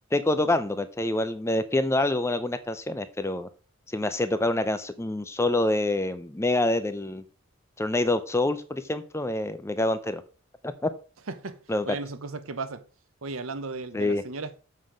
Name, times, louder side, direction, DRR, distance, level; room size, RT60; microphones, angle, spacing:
voice 1, 0.1-3.5 3.9-7.2 7.8-10.2 10.6-10.9 11.7-11.9 13.9-14.2, left 2 dB, 15° left, 0.6 m, -26 dB
voice 2, 11.3-12.8 13.2-14.6, right 3 dB, 80° right, 0.9 m, -36 dB
7.5 x 5.8 x 5.0 m
head